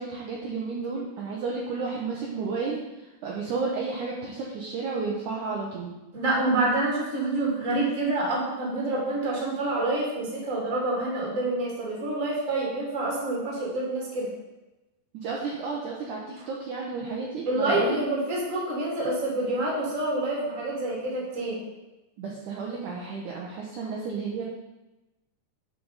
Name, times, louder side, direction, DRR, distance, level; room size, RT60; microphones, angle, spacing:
voice 1, 0.0-2.8 3.2-5.9 15.1-18.0 22.2-24.6, right 4 dB, 70° right, -3 dB, 2.0 m, -32 dB
voice 2, 6.1-14.3 17.5-21.6, right 2 dB, 25° right, -5 dB, 2.1 m, -27 dB
10.0 x 4.7 x 4.0 m, 1.0 s
omnidirectional pair, 4.3 m